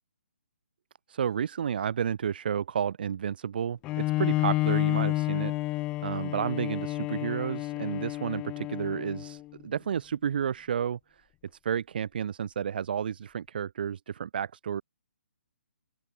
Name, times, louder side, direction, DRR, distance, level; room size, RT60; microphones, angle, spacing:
voice 1, 1.1-5.5 6.0-11.2 11.6-14.8, right 8 dB, 45° right, 1.6 m, -31 dB
Bowed string instrument, 3.8-9.5, left 18 dB, 10° left, 1.0 m, -30 dB
open air
hypercardioid pair, 170°, 7 cm